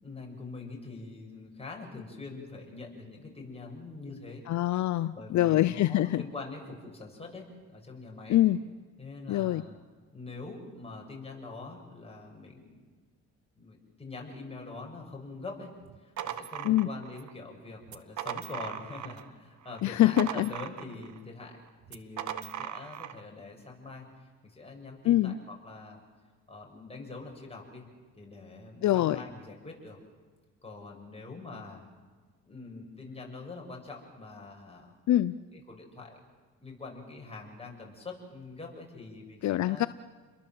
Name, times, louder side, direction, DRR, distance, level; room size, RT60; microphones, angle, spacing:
voice 1, 0.0-4.4 5.1-8.4 9.0-9.8 10.1-12.8 13.6-21.6 21.9-25.3 25.6-26.0 26.5-27.8 28.2-30.0 30.6-31.8 32.4-34.9 35.5-36.2 36.6-39.8, left 3 dB, 20° left, 0 dB, 7.6 m, -44 dB
voice 2, 4.5-6.2 8.3-8.6 9.3-9.6 16.6-16.9 19.8-20.5 25.1-25.4 28.8-29.2 35.1-35.4 39.4-39.9, left 14 dB, 70° left, 14 dB, 0.7 m, -24 dB
sound 1, 15.8-17.3 17.8-19.3 19.6-21.2 21.8-23.2, right 10 dB, 70° right, 1.3 m, -39 dB
29.5 x 22.0 x 7.8 m, 1.5 s
cardioid pair, 90°, 30 cm